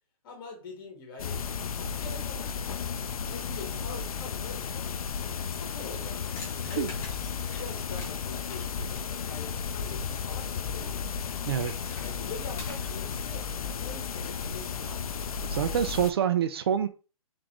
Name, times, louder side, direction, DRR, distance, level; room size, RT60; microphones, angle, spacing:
voice 1, 0.2-1.4 1.7-2.6 3.2-4.9 5.4-6.2 6.7-11.0 12.0-15.5, left 3 dB, 35° left, 1.8 m, -44 dB
sound 1, 1.2-16.1, left 6 dB, 70° left, 0.5 m, -34 dB
sound 2, 5.8-9.8 11.2-13.1, left 2 dB, 15° left, 1.3 m, -48 dB
voice 2, 15.5-16.9, right 9 dB, 40° right, 0.6 m, -26 dB
3.8 x 3.8 x 3.0 m
hypercardioid pair, 155°, 19 cm